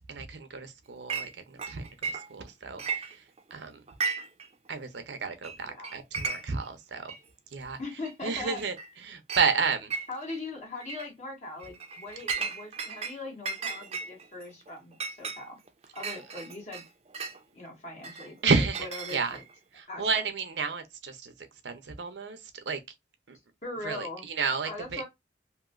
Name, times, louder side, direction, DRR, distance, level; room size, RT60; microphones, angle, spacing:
voice 1, 0.1-3.1 3.5-3.8 4.7-7.1 7.5-7.8 8.2-8.8 9.0-9.9 18.4-19.4 19.8-21.3 21.6-22.4 22.7-22.8 23.3-23.4 23.8-25.0, right 5 dB, 85° right, 0.6 m, -31 dB
Chink clink, 1.1-1.3 1.6-2.5 2.8-3.5 3.9-4.5 4.7-4.8 5.4-5.6 5.8-6.7 7.1-7.2 8.1-8.2 8.6-8.9 9.3-9.5 9.9-10.4 10.8-11.1 11.6-13.2 13.5-17.4 18.0-19.5, right 5 dB, 35° right, 0.5 m, -35 dB
voice 2, 5.6-6.0 7.8-8.6 10.1-15.6 15.9-16.8 17.5-19.4 19.9-20.2 23.6-24.3 24.6-25.1, left 2 dB, 40° left, 1.3 m, -40 dB
2.9 x 2.6 x 2.4 m
head